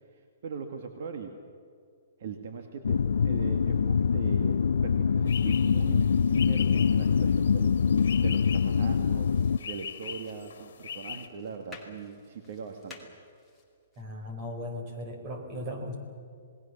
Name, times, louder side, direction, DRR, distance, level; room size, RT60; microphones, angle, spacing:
voice 1, 0.1-1.3 2.2-4.6 4.8-7.7 8.2-9.3 9.6-13.0, right 5 dB, 55° right, 5 dB, 2.0 m, -40 dB
sound 1, 2.8-9.6, left 6 dB, 85° left, 0.5 m, -24 dB
sound 2, 5.3-11.3, left 7 dB, 70° left, 2.0 m, -42 dB
sound 3, 8.9-14.0, left 4 dB, 5° left, 2.6 m, -54 dB
voice 2, 14.0-16.0, left 1 dB, 25° right, 3 dB, 4.3 m, -37 dB
28.0 x 19.5 x 7.3 m, 2.3 s
hypercardioid pair, 160°, 0 cm